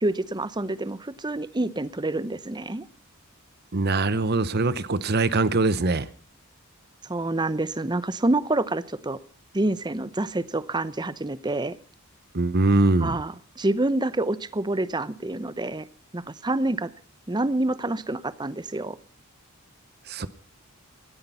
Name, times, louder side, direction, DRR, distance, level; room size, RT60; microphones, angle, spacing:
voice 1, 0.0-2.8 7.0-9.2 9.5-11.8 13.0-15.9 16.1-16.9 17.3-19.0, right 2 dB, 20° right, 16 dB, 0.8 m, -27 dB
voice 2, 3.7-6.1 12.3-13.2 20.1-20.3, right 3 dB, 45° right, 15 dB, 0.9 m, -22 dB
18.0 x 13.5 x 5.7 m, 0.43 s
head